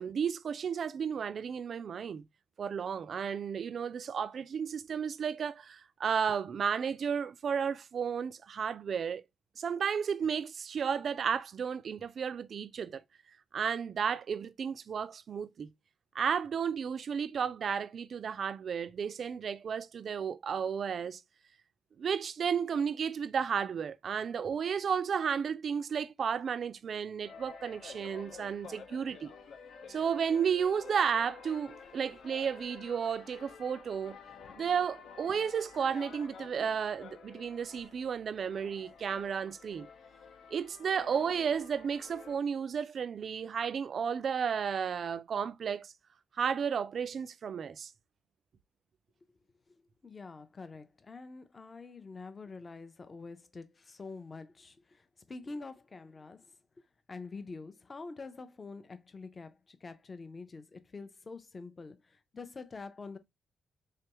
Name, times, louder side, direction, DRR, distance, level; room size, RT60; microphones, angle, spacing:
voice 1, 0.0-2.2 2.6-9.2 9.6-13.0 13.5-15.7 16.1-21.2 22.0-29.3 29.9-34.2 34.6-39.9 40.5-45.9 46.4-47.9, right 7 dB, 50° right, 0.3 m, -33 dB
sound 1, 27.2-42.4, left 6 dB, 75° left, 0.8 m, -51 dB
voice 2, 50.0-56.4 57.1-63.2, left 3 dB, 25° left, 0.5 m, -46 dB
3.7 x 3.3 x 2.9 m
cardioid pair, 150°, 0 cm